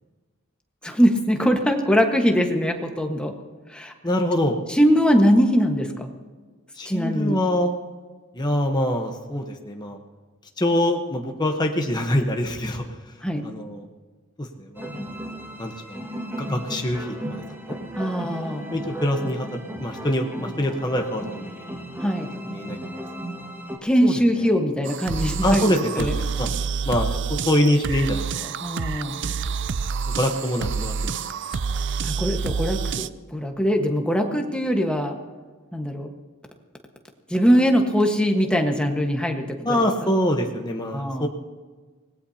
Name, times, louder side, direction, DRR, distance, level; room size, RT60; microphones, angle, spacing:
voice 1, 0.8-3.3 3.7-3.9 4.7-6.1 6.8-7.4 13.2-13.4 18.0-18.6 22.0-22.3 23.8-26.1 28.6-29.2 32.0-35.2 35.7-36.1 37.3-39.8 40.9-41.3, equal, 5° left, 2 dB, 1.4 m, -22 dB
voice 2, 4.0-4.6 6.7-7.7 8.3-10.0 10.6-13.1 13.4-13.9 14.4-14.9 15.6-16.0 16.4-17.8 18.7-21.8 22.5-23.0 23.3-23.4 24.0-24.1 25.4-26.5 26.8-28.5 30.1-31.6 39.6-41.3, left 1 dB, 20° left, 2 dB, 1.0 m, -25 dB
sound 1, 14.7-23.8, equal, 10° right, 1.8 m, -35 dB
sound 2, 24.9-33.1, right 5 dB, 60° right, 0.5 m, -28 dB
25.0 x 19.0 x 2.8 m, 1.4 s
head